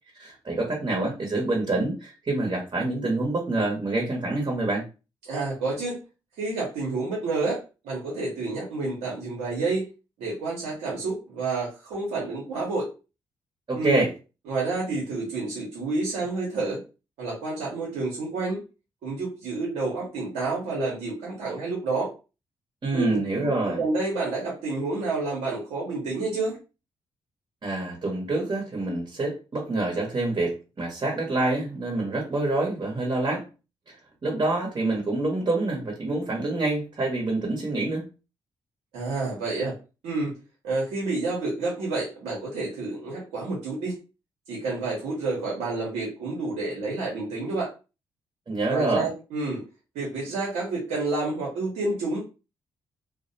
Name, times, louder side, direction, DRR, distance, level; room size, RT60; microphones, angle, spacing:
voice 1, 0.2-4.8 13.7-14.1 22.8-23.8 27.6-33.4 33.9-34.0 34.2-38.1 48.5-49.1, right 2 dB, 45° right, -1 dB, 0.9 m, -26 dB
voice 2, 5.2-6.0 6.4-9.9 10.2-12.9 13.7-14.1 14.5-16.8 17.2-18.6 19.0-22.1 22.9-26.6 38.9-39.7 40.0-40.3 40.6-43.9 44.5-47.7 48.7-49.6 49.9-52.2, right 3 dB, 90° right, -5 dB, 0.8 m, -29 dB
2.4 x 2.0 x 2.6 m, 0.30 s
supercardioid pair, 55°, 11 cm